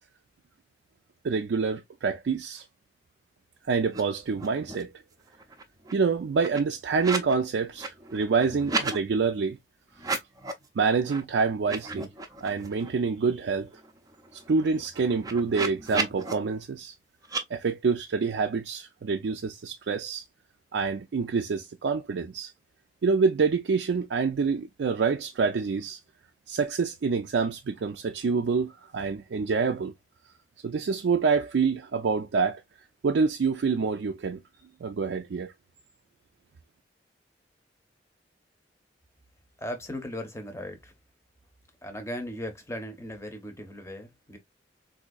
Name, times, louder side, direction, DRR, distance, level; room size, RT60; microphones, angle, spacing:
voice 1, 1.2-2.6 3.7-4.9 5.9-9.6 10.8-12.1 12.4-13.7 14.3-16.9 17.5-20.2 20.7-22.5 23.0-26.0 26.5-29.9 30.6-32.6 33.0-34.4 34.8-35.5, right 5 dB, 75° right, 0.4 m, -27 dB
sound 1, 3.9-4.0 4.3-4.9 5.3-7.4 7.7-9.0 9.9-10.7 11.1-11.2 11.6-12.9 13.3-13.4 13.7-16.3 17.2-17.4, right 3 dB, 20° right, 0.5 m, -34 dB
voice 2, 39.6-40.9 41.8-44.4, left 1 dB, 15° left, 0.8 m, -37 dB
4.0 x 2.6 x 2.3 m
head